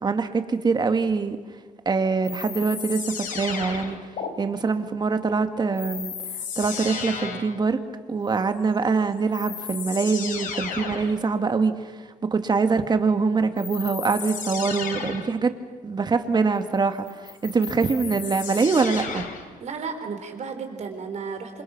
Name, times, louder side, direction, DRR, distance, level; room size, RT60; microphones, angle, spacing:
voice 1, 0.0-1.4 1.9-4.0 4.4-6.1 6.6-7.8 8.1-11.9 12.2-15.5 15.8-19.2, right 4 dB, 30° right, 8 dB, 1.9 m, -24 dB
sound 1, 2.2-4.3 5.8-7.6 8.9-9.0 9.3-11.2 13.6-15.4 17.1-19.5, left 6 dB, 75° left, 3.4 m, -34 dB
voice 2, 19.6-21.6, right 5 dB, 55° right, 6 dB, 4.2 m, -33 dB
28.0 x 26.5 x 5.9 m, 1.5 s
cardioid pair, 125°, 14 cm